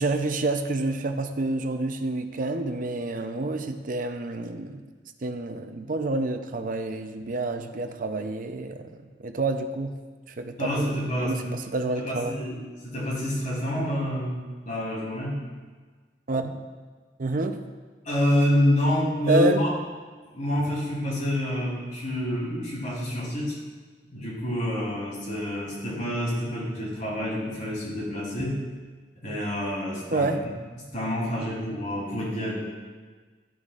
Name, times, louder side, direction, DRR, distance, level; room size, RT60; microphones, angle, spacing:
voice 1, 0.0-4.8 5.2-8.9 9.2-10.0 10.4-10.9 11.2-12.4 16.3-16.6 17.2-17.6 19.3-19.6 30.1-30.4, right 2 dB, 50° right, 7 dB, 0.6 m, -28 dB
voice 2, 10.6-11.5 11.9-14.4 14.6-15.4 18.0-19.7 20.3-23.6 24.1-28.5 29.2-30.3 30.9-32.6, equal, 45° left, -5 dB, 3.1 m, -27 dB
11.0 x 10.5 x 2.5 m, 1.4 s
head